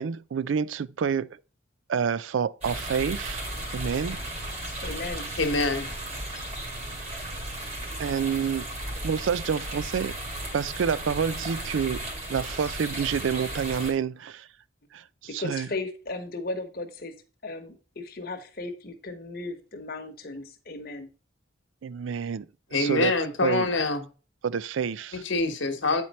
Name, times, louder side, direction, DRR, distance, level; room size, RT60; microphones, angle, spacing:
voice 1, 0.0-1.4 1.9-4.2 8.0-8.7 9.0-10.2 10.5-14.5 14.9-15.7 21.8-23.1 23.4-23.7 24.4-25.2, right 7 dB, 75° right, 0.4 m, -28 dB
sound 1, 2.6-13.9, right 1 dB, 30° right, 2.1 m, -35 dB
voice 2, 4.8-5.3 15.4-17.1 17.4-21.1, left 2 dB, 50° left, 1.1 m, -36 dB
voice 3, 5.4-5.9 22.7-24.0 25.1-26.0, left 3 dB, 75° left, 1.2 m, -25 dB
8.9 x 4.5 x 4.1 m
head